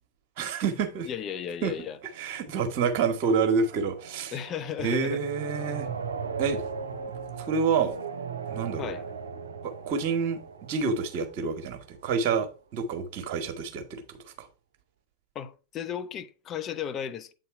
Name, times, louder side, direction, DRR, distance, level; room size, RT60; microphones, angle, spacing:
voice 1, 0.4-1.1 1.6-1.7 2.2-4.3 4.8-5.9 6.4-6.6 7.4-8.0 8.5-8.9 9.6-14.5, right 5 dB, 45° right, 1.3 m, -28 dB
voice 2, 1.0-2.0 4.3-5.2 8.8-9.0 15.3-17.3, left 8 dB, 30° left, 0.7 m, -35 dB
sound 1, 1.1-12.0, right 5 dB, 70° right, 0.7 m, -39 dB
7.8 x 4.1 x 4.5 m
figure-of-eight pair, 90°, 0 cm